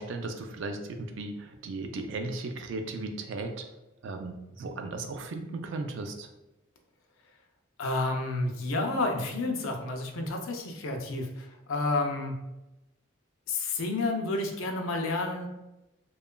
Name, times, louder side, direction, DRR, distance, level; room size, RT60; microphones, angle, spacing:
voice 1, 0.0-3.7 4.0-6.3, right 3 dB, 65° right, 6 dB, 0.3 m, -36 dB
voice 2, 7.8-12.4 13.5-15.5, left 2 dB, 80° left, 3 dB, 0.4 m, -30 dB
2.8 x 2.3 x 2.2 m, 0.96 s
head